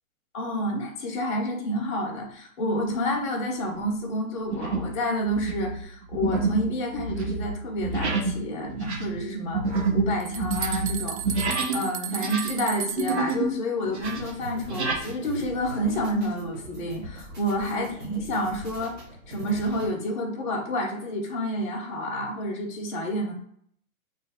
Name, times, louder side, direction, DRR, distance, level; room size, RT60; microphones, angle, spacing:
voice 1, 0.3-11.5 11.7-18.9 19.3-23.3, equal, 15° left, -1 dB, 0.5 m, -29 dB
sound 1, 2.8-3.2 3.7-3.9 4.5-5.0 5.3-11.8 12.1-13.5 13.8-15.0, right 3 dB, 50° right, 0.8 m, -28 dB
sound 2, 9.8-9.9 10.2-13.3, right 10 dB, 75° right, 0.5 m, -34 dB
sound 3, 14.0-19.9, right 2 dB, 30° right, 1.1 m, -41 dB
3.4 x 2.2 x 4.1 m, 0.64 s
hypercardioid pair, 155°, 43 cm